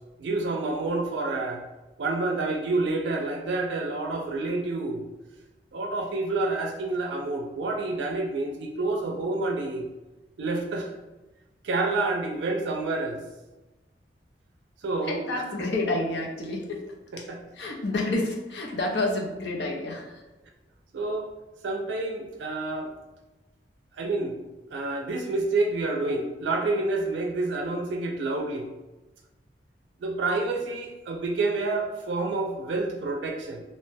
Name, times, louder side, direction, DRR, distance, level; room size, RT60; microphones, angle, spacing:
voice 1, 0.2-1.6 2.0-5.0 5.7-9.9 10.4-10.9 11.6-13.2 14.8-15.2 17.1-17.4 20.9-21.3 21.6-22.9 24.0-24.4 24.7-28.7 30.0-33.6, right 2 dB, 80° right, 1 dB, 0.4 m, -28 dB
voice 2, 15.0-16.8 17.5-20.2, left 2 dB, 70° left, 0 dB, 0.6 m, -29 dB
2.7 x 2.1 x 3.2 m, 1.1 s
head